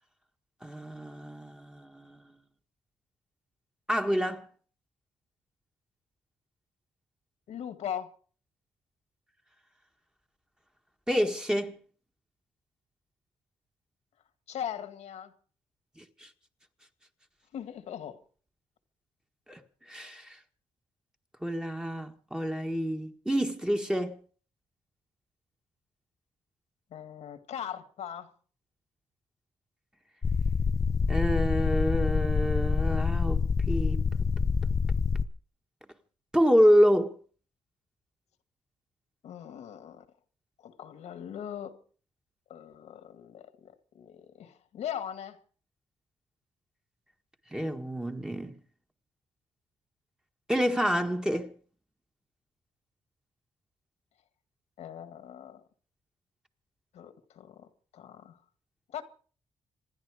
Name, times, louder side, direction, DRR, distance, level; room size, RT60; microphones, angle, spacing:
voice 1, 0.6-2.2 3.9-4.5 11.1-11.8 16.0-16.3 19.5-19.6 19.9-20.4 21.4-24.2 31.1-34.0 36.3-37.2 47.5-48.6 50.5-51.5, equal, 5° right, 1.7 m, -27 dB
voice 2, 7.5-8.1 14.5-15.3 17.5-18.2 26.9-28.3 39.2-40.1 40.6-41.8 42.5-45.4 54.8-55.6 56.9-58.4 58.9-59.0, left 9 dB, 80° left, 1.9 m, -40 dB
sound 1, 30.2-35.3, left 5 dB, 30° left, 0.6 m, -26 dB
27.0 x 10.5 x 5.0 m
cardioid pair, 110°, 11 cm